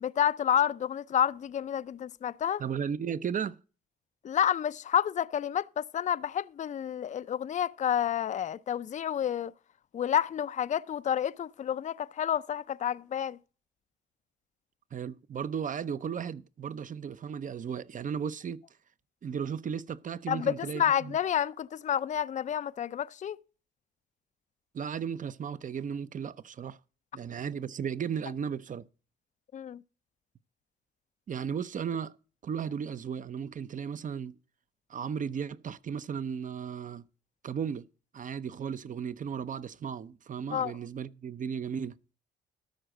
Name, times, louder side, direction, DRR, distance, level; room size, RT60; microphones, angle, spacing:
voice 1, 0.0-2.6 4.2-9.5 9.9-13.4 20.3-23.4 29.5-29.8 40.5-40.7, left 9 dB, 40° left, 0.4 m, -29 dB
voice 2, 2.6-3.6 14.9-18.6 19.2-21.2 24.7-26.8 27.1-28.9 31.3-32.1 32.4-34.4 34.9-37.0 37.4-37.9 38.1-42.0, right 7 dB, 40° right, 0.6 m, -35 dB
13.0 x 5.0 x 7.7 m
cardioid pair, 90°, 20 cm